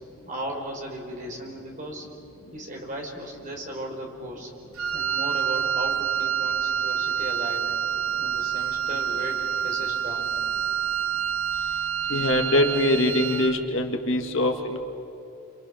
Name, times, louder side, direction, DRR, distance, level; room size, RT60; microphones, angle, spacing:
voice 1, 0.3-2.1 2.5-4.5 4.9-7.7 8.2-10.4, right 1 dB, 35° right, 0 dB, 4.9 m, -36 dB
Wind instrument woodwind instrument, 4.7-13.6, right 8 dB, 80° right, 1.1 m, -27 dB
voice 2, 12.1-14.8, left 1 dB, 60° left, 4 dB, 2.2 m, -23 dB
30.0 x 27.5 x 6.5 m, 2.8 s
head